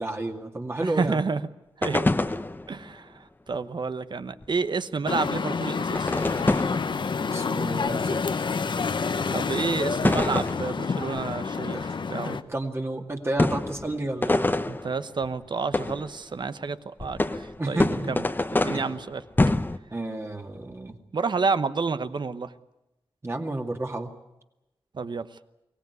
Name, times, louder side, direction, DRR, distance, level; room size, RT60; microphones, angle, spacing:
voice 1, 0.0-1.2 7.3-8.3 11.7-11.9 12.2-14.6 17.6-18.1 18.7-18.8 19.9-21.0 23.2-24.1, right 2 dB, 25° right, 3 dB, 2.3 m, -31 dB
voice 2, 0.8-1.4 1.8-2.1 2.7-6.2 9.3-12.3 14.6-17.8 18.1-18.2 18.5-19.2 21.1-22.5 24.9-25.3, right 4 dB, 50° right, 12 dB, 1.1 m, -30 dB
sound 1, 1.8-2.9 4.4-4.5 5.9-7.1 7.9-8.0 10.0-11.3 11.8-11.9 13.4-15.3 15.7-16.1 17.0-19.8, left 2 dB, 20° left, 0.9 m, -26 dB
sound 2, 5.1-12.4, left 5 dB, 55° left, 0.9 m, -28 dB
23.0 x 18.0 x 9.6 m, 0.93 s
wide cardioid pair, 100°, 10 cm